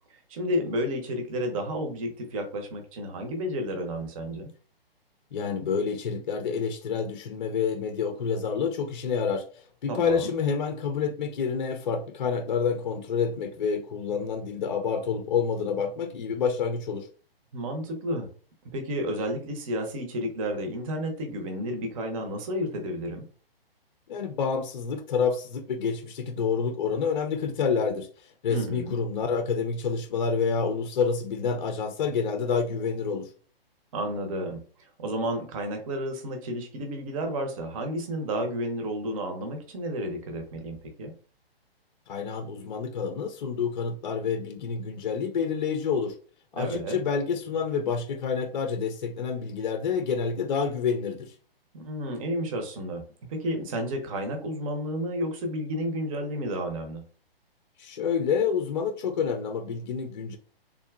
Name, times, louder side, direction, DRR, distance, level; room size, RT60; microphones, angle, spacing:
voice 1, 0.3-4.5 9.9-10.4 17.5-18.3 18.7-23.3 28.5-29.0 33.9-34.6 35.0-41.1 46.6-47.0 51.7-53.0 53.3-57.0, equal, 35° right, 0.8 m, -31 dB
voice 2, 5.3-17.1 24.1-33.3 42.1-46.1 46.5-51.3 57.8-60.4, left 6 dB, 50° left, 0.5 m, -28 dB
3.5 x 2.6 x 2.3 m
figure-of-eight pair, 130°, 30 cm